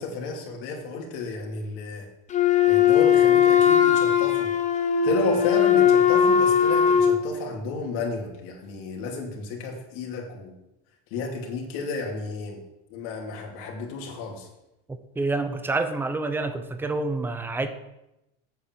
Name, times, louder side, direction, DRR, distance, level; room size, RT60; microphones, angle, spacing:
voice 1, 0.0-2.1 2.7-4.5 5.0-10.5 11.1-12.6 12.9-14.5, left 4 dB, 60° left, 0 dB, 2.6 m, -32 dB
Wind instrument woodwind instrument, 2.3-7.2, left 8 dB, 20° left, 1.0 m, -19 dB
voice 2, 14.9-17.7, right 3 dB, 5° right, 9 dB, 0.6 m, -28 dB
8.7 x 6.8 x 7.4 m, 0.90 s
cardioid pair, 160°, 35 cm